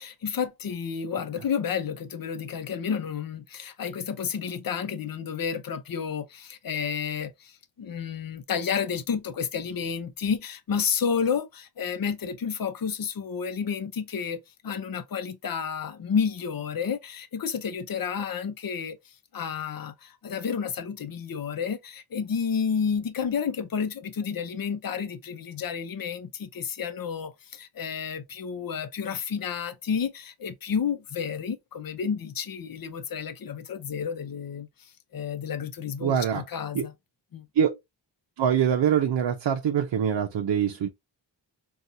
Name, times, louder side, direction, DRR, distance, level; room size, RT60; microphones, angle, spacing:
voice 1, 0.0-36.9 37.3-37.5, left 7 dB, 50° left, 0.6 m, -31 dB
voice 2, 36.0-36.4 36.7-36.9 37.6-37.8 38.4-40.9, right 8 dB, 65° right, 0.6 m, -24 dB
4.0 x 2.4 x 2.6 m
wide cardioid pair, 80°, 44 cm